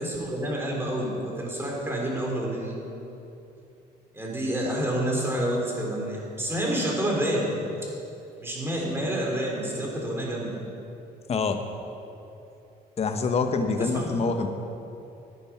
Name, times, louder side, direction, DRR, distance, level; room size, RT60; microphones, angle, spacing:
voice 1, 0.0-2.8 4.1-7.5 8.4-10.5 13.8-14.1, right 1 dB, 15° right, -2 dB, 3.5 m, -28 dB
voice 2, 11.3-11.6 13.0-14.5, left 4 dB, 40° left, 6 dB, 1.1 m, -25 dB
13.5 x 9.4 x 6.0 m, 2.8 s
cardioid pair, 110°, 17 cm